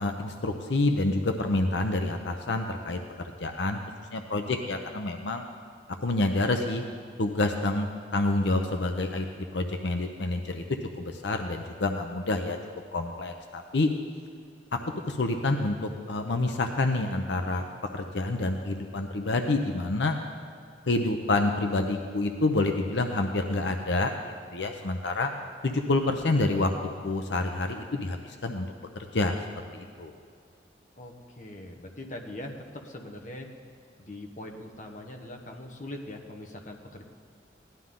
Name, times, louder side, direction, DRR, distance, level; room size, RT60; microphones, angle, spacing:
voice 1, 0.0-3.0 3.4-3.8 4.1-5.4 6.0-6.8 7.2-9.3 9.5-10.6 11.0-12.6 12.9-13.9 14.7-14.8 15.0-15.8 16.1-17.7 17.9-20.2 20.9-24.1 24.5-25.3 25.6-26.7 27.0-28.7 29.0-29.4 29.7-30.1, left 2 dB, 75° left, 5 dB, 0.8 m, -27 dB
voice 2, 31.0-33.5 34.0-37.0, left 1 dB, 40° left, 2 dB, 1.1 m, -41 dB
17.0 x 11.5 x 3.8 m, 2.2 s
head